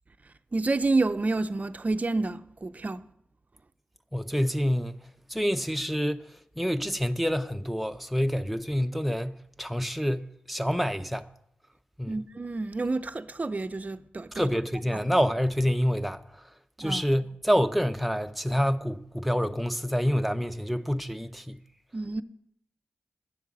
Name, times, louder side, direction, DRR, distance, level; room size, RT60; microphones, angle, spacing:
voice 1, 0.5-3.0 12.1-14.5 14.9-15.0 16.8-17.0 21.9-22.2, right 3 dB, 35° right, 0.6 m, -29 dB
voice 2, 4.1-5.0 5.3-6.2 6.6-11.3 12.0-12.1 14.3-16.2 16.8-21.6, equal, ahead, 0.7 m, -27 dB
10.5 x 7.5 x 7.5 m
cardioid pair, 50°, 4 cm